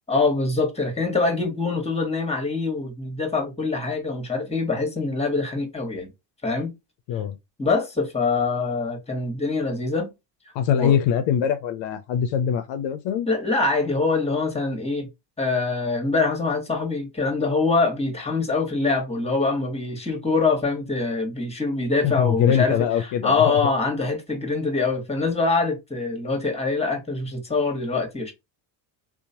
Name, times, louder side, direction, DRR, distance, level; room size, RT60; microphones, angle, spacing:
voice 1, 0.1-6.1 6.4-6.7 7.6-10.1 10.7-10.9 13.3-15.1 15.4-28.3, left 3 dB, 15° left, 1.2 m, -24 dB
voice 2, 10.5-13.3 22.0-23.6, left 8 dB, 65° left, 0.6 m, -23 dB
2.9 x 2.1 x 2.7 m
supercardioid pair, 80°, 49 cm